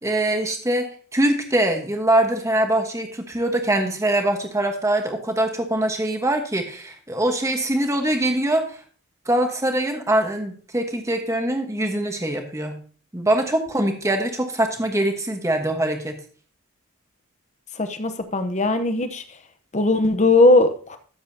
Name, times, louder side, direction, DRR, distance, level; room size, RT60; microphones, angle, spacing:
voice 1, 0.0-8.8 9.3-12.8 13.1-16.1, right 1 dB, 15° right, 4 dB, 1.2 m, -23 dB
voice 2, 17.8-19.2 19.7-21.0, left 2 dB, 30° left, 9 dB, 0.9 m, -19 dB
13.0 x 7.4 x 2.8 m, 0.42 s
head